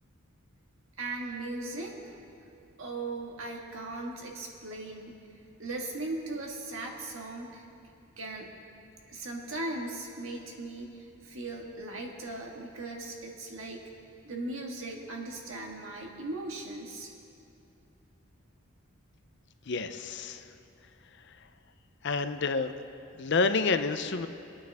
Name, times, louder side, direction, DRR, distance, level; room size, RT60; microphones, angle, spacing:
voice 1, 1.0-2.2 2.8-5.2 5.6-7.6 8.2-8.5 9.1-13.9 14.2-17.1, right 2 dB, 70° right, 0 dB, 1.7 m, -38 dB
voice 2, 19.7-20.4 22.0-22.7 23.2-24.3, left 4 dB, 55° left, 9 dB, 0.6 m, -28 dB
23.5 x 9.0 x 3.5 m, 2.6 s
head